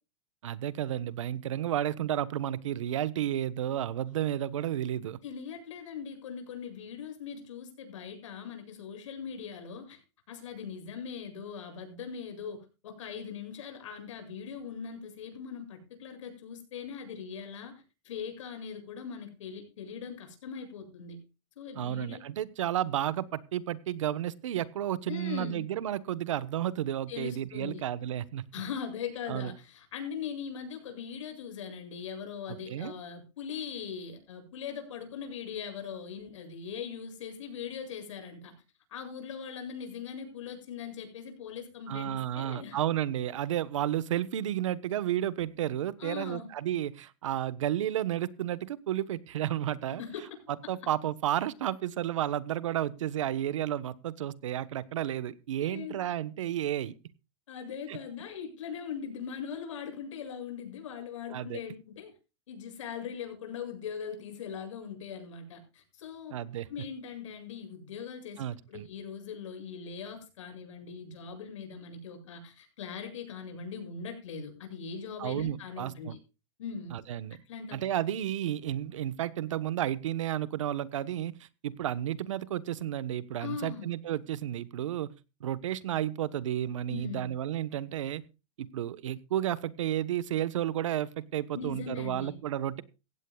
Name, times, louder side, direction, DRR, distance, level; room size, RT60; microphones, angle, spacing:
voice 1, 0.4-5.2 21.7-28.5 29.3-29.5 32.7-32.9 41.9-50.0 50.5-56.9 57.9-58.0 61.3-61.6 66.3-66.7 68.4-68.9 75.2-76.2 76.9-77.4 77.7-81.4 81.6-85.1 85.4-88.2 88.6-92.8, right 11 dB, 90° right, 17 dB, 1.3 m, -32 dB
voice 2, 5.2-10.0 10.3-21.2 21.6-22.2 25.1-25.6 27.1-27.8 28.5-38.5 38.9-42.8 46.0-46.5 50.0-50.3 55.6-56.0 57.5-62.1 62.5-66.3 66.7-76.2 76.6-76.9 77.5-77.8 83.4-83.9 86.9-87.3 91.5-92.4, left 7 dB, 85° left, 5 dB, 7.7 m, -40 dB
17.0 x 15.5 x 2.4 m, 0.30 s
supercardioid pair, 180°, 16 cm